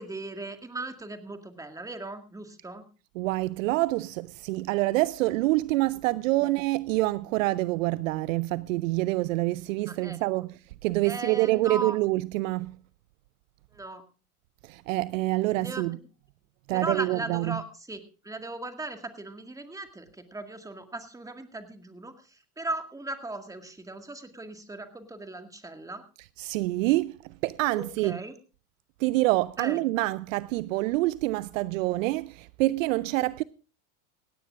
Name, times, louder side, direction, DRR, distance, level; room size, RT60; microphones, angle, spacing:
voice 1, 0.0-2.8 6.4-6.5 9.9-10.5 11.0-12.0 13.7-14.0 15.6-16.0 16.7-26.0 27.8-28.3 29.6-29.8, right 2 dB, 5° right, 1.9 m, -38 dB
voice 2, 3.2-10.5 10.8-12.8 14.6-16.0 16.7-17.6 26.4-27.2 27.4-28.2 29.0-33.4, right 19 dB, 60° right, 0.5 m, -26 dB
18.0 x 16.5 x 2.4 m
hypercardioid pair, 90°, 45 cm